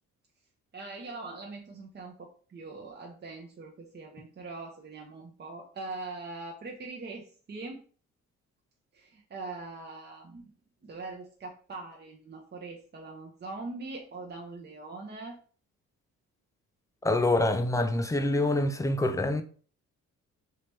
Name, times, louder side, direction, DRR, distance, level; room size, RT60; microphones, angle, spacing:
voice 1, 0.7-7.8 8.9-10.5 10.8-15.4, right 3 dB, 35° right, 0.7 m, -42 dB
voice 2, 17.0-19.4, left 2 dB, 10° left, 0.4 m, -26 dB
3.0 x 2.9 x 3.4 m
cardioid pair, 90°, 30 cm